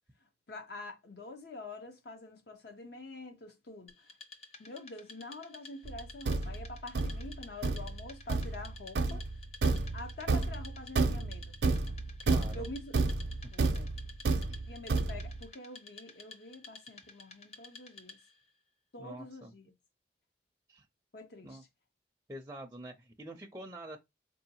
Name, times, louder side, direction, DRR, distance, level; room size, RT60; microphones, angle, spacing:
voice 1, 0.2-4.1 4.6-9.3 9.9-11.6 12.5-13.0 13.5-13.9 14.7-18.2 18.9-19.7 21.1-21.7, left 2 dB, 60° left, 0.6 m, -46 dB
Wood, 3.9-18.4, left 3 dB, 35° left, 0.9 m, -53 dB
Thump thud, 5.9-15.4, right 3 dB, 70° right, 0.5 m, -31 dB
voice 2, 12.2-12.7 13.4-13.7 14.5-14.6 19.0-19.5 20.7-20.9 21.4-21.6 22.3-24.0, right 1 dB, 15° right, 0.4 m, -46 dB
4.5 x 2.7 x 2.7 m
head